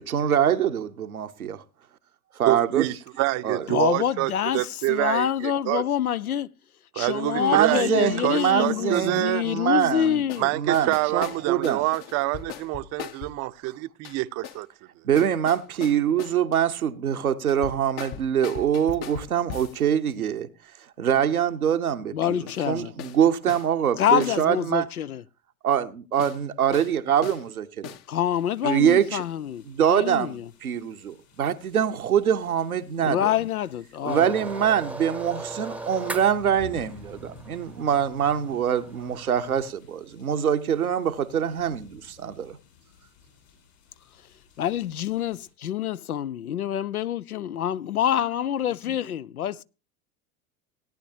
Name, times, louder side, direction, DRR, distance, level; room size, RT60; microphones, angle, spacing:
voice 1, 0.0-1.6 2.4-3.0 3.4-3.7 7.4-10.2 10.5-11.9 15.0-20.5 21.0-24.9 25.6-27.9 28.6-29.2 29.6-33.4 34.0-42.6, right 9 dB, 80° right, 1.0 m, -24 dB
voice 2, 2.5-5.8 7.0-9.4 10.4-14.7, right 18 dB, 40° right, 0.7 m, -26 dB
voice 3, 3.7-6.5 6.9-10.5 22.1-22.9 24.0-25.2 28.1-30.5 33.0-34.4 44.6-49.6, left 10 dB, 80° left, 0.6 m, -26 dB
sound 1, 9.8-9.9 10.3-10.5 10.7-13.4 14.0-14.6 15.1-16.6 17.5-19.8 22.5-22.6 23.0-23.2 23.5-23.7 24.2-24.4 26.2-26.4 26.7-26.9 27.2-27.4 27.8-28.1, left 9 dB, 35° left, 0.8 m, -39 dB
sound 2, 28.3-45.5, left 8 dB, 65° left, 7.5 m, -53 dB
sound 3, 34.1-39.7, right 2 dB, 5° right, 0.8 m, -39 dB
17.5 x 10.0 x 2.8 m
figure-of-eight pair, 75°, 43 cm